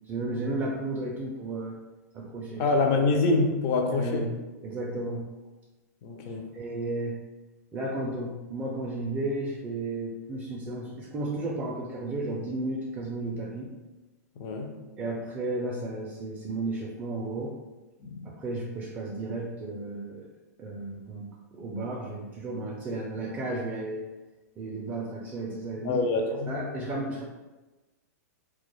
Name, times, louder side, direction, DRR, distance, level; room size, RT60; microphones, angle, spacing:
voice 1, 0.1-1.8 2.1-2.7 3.9-4.3 4.6-5.3 6.5-7.2 7.7-13.7 15.0-17.5 18.2-20.3 20.6-21.3 21.5-24.1 24.6-26.0 26.5-27.2, right 2 dB, 20° right, -3 dB, 0.4 m, -33 dB
voice 2, 2.6-4.3 6.0-6.6 14.4-14.8 18.0-18.3 25.8-26.7, left 3 dB, 40° left, 3 dB, 0.4 m, -26 dB
2.2 x 2.0 x 3.1 m, 1.1 s
hypercardioid pair, 135°, 9 cm